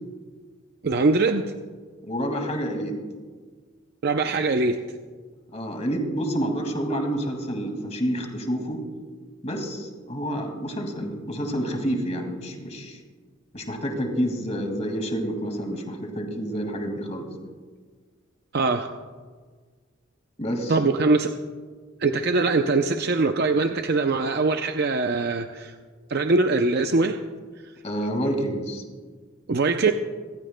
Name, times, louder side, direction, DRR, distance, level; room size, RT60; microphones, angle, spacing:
voice 1, 0.8-1.5 4.0-4.8 18.5-18.9 20.7-21.3 22.0-25.7 26.1-27.2 29.5-29.9, right 3 dB, 50° right, 6 dB, 0.5 m, -22 dB
voice 2, 2.0-3.0 5.5-8.8 9.4-13.0 13.5-17.3 20.4-20.8 27.8-28.8, equal, 35° left, 3 dB, 2.1 m, -28 dB
26.0 x 14.0 x 2.2 m, 1.5 s
head